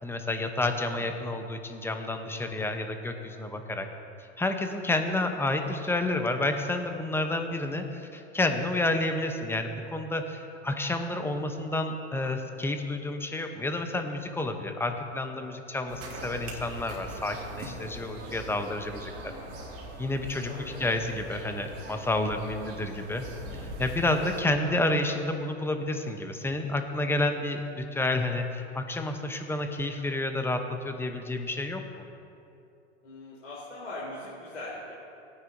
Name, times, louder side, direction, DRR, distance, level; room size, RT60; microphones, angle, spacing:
voice 1, 0.0-3.9 4.4-19.1 20.0-23.3 23.6-32.0, left 2 dB, 5° left, 6 dB, 0.8 m, -30 dB
voice 2, 0.7-1.3 19.1-19.9 20.4-21.0 24.4-24.8 33.0-34.9, left 2 dB, 85° left, -6 dB, 2.6 m, -43 dB
sound 1, 15.9-24.4, right 1 dB, 40° right, 2.1 m, -41 dB
17.5 x 9.6 x 2.7 m, 2.7 s
hypercardioid pair, 100°, 35 cm